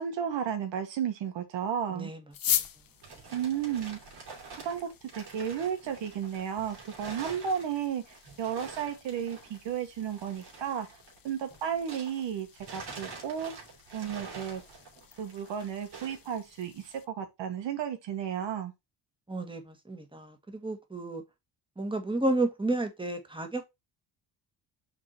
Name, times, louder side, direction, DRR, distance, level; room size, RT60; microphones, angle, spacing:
voice 1, 0.0-2.1 3.3-4.0 4.6-10.9 11.2-12.5 12.7-13.7 13.9-14.6 15.2-18.7, right 8 dB, 85° right, 1.5 m, -33 dB
voice 2, 1.9-2.2 2.5-2.6 3.1-3.2 19.3-21.2 21.8-23.6, right 2 dB, 10° right, 1.8 m, -32 dB
sound 1, 2.3-17.0, left 9 dB, 55° left, 0.9 m, -41 dB
sound 2, 2.6-12.3 12.6-16.3, right 4 dB, 65° right, 3.1 m, -47 dB
6.0 x 3.8 x 4.4 m
cardioid pair, 75°, 43 cm